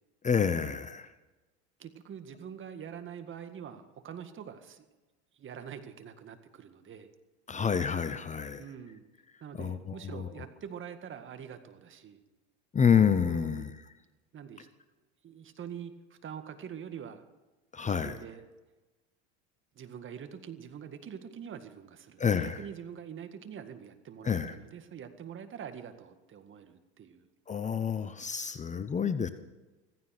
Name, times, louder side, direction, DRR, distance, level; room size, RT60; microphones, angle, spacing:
voice 1, 0.2-1.1 7.5-8.6 9.6-10.3 12.7-13.7 17.7-18.2 22.2-22.6 24.2-24.5 27.5-29.3, left 7 dB, 20° left, 12 dB, 0.9 m, -28 dB
voice 2, 1.8-4.9 5.3-7.1 8.6-9.0 9.4-12.2 13.3-13.7 14.3-14.7 15.2-15.9 16.2-17.2 17.8-18.4 19.7-27.3, right 8 dB, 35° right, 8 dB, 1.9 m, -45 dB
16.0 x 15.0 x 6.0 m, 1.1 s
hypercardioid pair, 90°, 33 cm